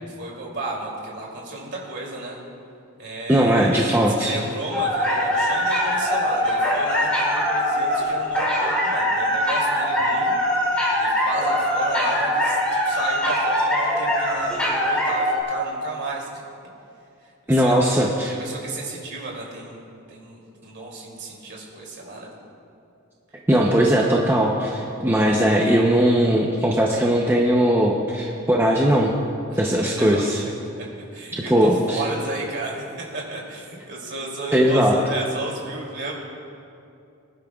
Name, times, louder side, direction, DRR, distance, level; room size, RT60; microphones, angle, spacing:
voice 1, 0.2-2.4 3.0-10.3 11.0-12.6 12.8-16.4 17.5-19.8 20.1-22.3 29.5-30.2 30.9-32.8 33.1-36.1, right 2 dB, 50° right, -3 dB, 2.8 m, -33 dB
voice 2, 3.3-4.4 17.5-18.3 23.5-29.1 29.6-30.4 31.5-32.0 34.5-34.9, equal, 10° right, -2 dB, 0.7 m, -19 dB
sound 1, 4.7-15.4, equal, 5° left, 2.6 m, -22 dB
24.0 x 11.0 x 2.4 m, 2.6 s
head